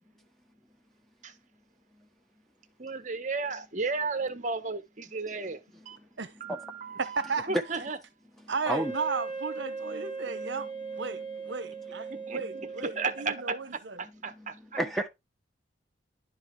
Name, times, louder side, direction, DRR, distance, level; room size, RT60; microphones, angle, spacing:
voice 1, 2.8-5.6 5.8-6.0 6.4-8.0 12.1-12.4 12.8-14.8, right 4 dB, 40° right, 1.1 m, -34 dB
voice 2, 7.0-7.5 8.5-10.7 11.0-11.2 11.5-14.0, right 4 dB, 65° right, 1.0 m, -34 dB
Wind instrument woodwind instrument, 8.6-13.7, right 4 dB, 25° left, 2.0 m, -39 dB
voice 3, 9.9-11.1 11.4-12.5 14.4-14.5 14.8-15.1, right 1 dB, ahead, 1.1 m, -34 dB
11.0 x 5.0 x 3.7 m
head